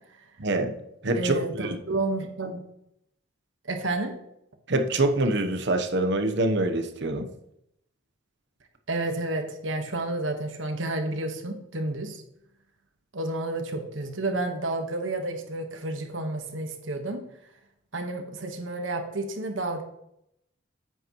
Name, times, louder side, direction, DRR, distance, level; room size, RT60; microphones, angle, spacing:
voice 1, 0.4-0.8 1.0-1.8 4.7-7.3, right 2 dB, 65° right, 7 dB, 1.0 m, -25 dB
voice 2, 1.1-2.6 3.7-4.1 8.9-12.2 13.1-17.2 17.9-19.8, right 2 dB, 80° right, 5 dB, 1.5 m, -30 dB
9.7 x 8.0 x 3.1 m, 0.78 s
head